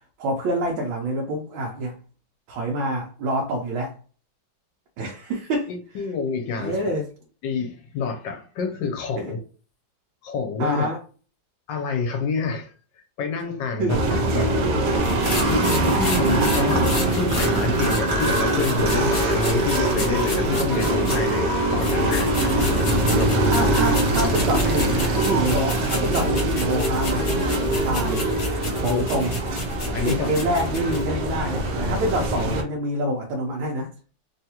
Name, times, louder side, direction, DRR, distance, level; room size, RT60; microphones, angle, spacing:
voice 1, 0.2-2.0 2.5-3.9 5.0-5.7 6.6-7.1 10.6-11.0 13.8-14.0 23.4-27.3 27.8-28.3 28.8-29.4 30.0-33.9, right 1 dB, 85° right, 1.5 m, -26 dB
voice 2, 5.9-6.9 7.4-9.4 10.2-10.9 11.7-12.7 13.2-14.0 14.3-14.6 15.3-22.7 23.1-23.4 24.4-25.1 28.9-29.1 29.9-30.3, left 5 dB, 75° left, 1.3 m, -28 dB
sound 1, 13.9-32.6, right 1 dB, 70° right, 0.8 m, -23 dB
sound 2, 15.0-21.4 21.8-31.0, left 2 dB, 55° left, 1.3 m, -32 dB
3.5 x 2.3 x 2.8 m
omnidirectional pair, 2.1 m